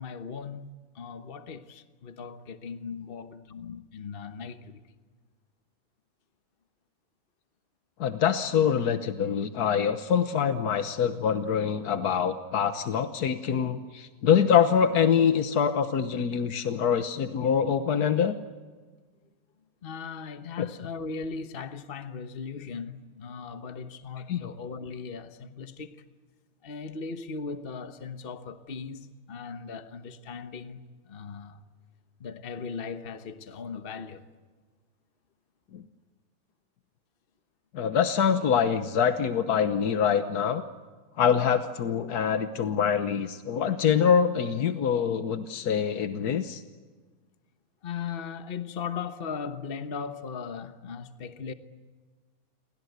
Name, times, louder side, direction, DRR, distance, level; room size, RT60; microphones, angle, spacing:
voice 1, 0.0-4.8 19.8-26.1 26.6-31.6 32.2-34.3 41.1-41.2 47.8-51.5, left 5 dB, 40° left, 1.3 m, -38 dB
voice 2, 8.0-18.3 20.6-20.7 24.3-24.5 35.7-35.8 37.7-40.6 41.2-46.6, left 7 dB, 85° left, 1.6 m, -25 dB
29.5 x 23.5 x 8.1 m
omnidirectional pair, 1.6 m